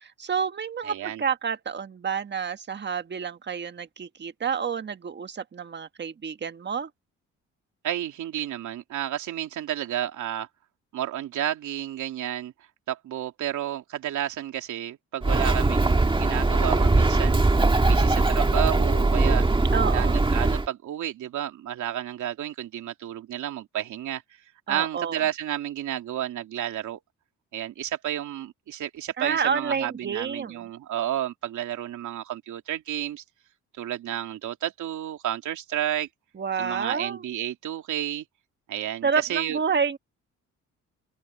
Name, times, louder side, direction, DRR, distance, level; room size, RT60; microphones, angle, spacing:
voice 1, 0.0-6.9 19.7-20.2 24.7-25.2 29.2-30.6 36.4-37.2 39.0-40.0, right 6 dB, 35° right, 1.5 m, -29 dB
voice 2, 0.8-1.2 7.8-10.5 10.9-12.5 12.9-17.4 17.8-19.5 19.9-24.2 24.7-27.0 27.5-33.2 33.8-36.1 36.6-38.2 38.7-39.6, right 11 dB, 75° right, 3.0 m, -31 dB
Bird, 15.2-20.7, right 2 dB, 15° right, 1.8 m, -21 dB
open air
cardioid pair, 90°, 30 cm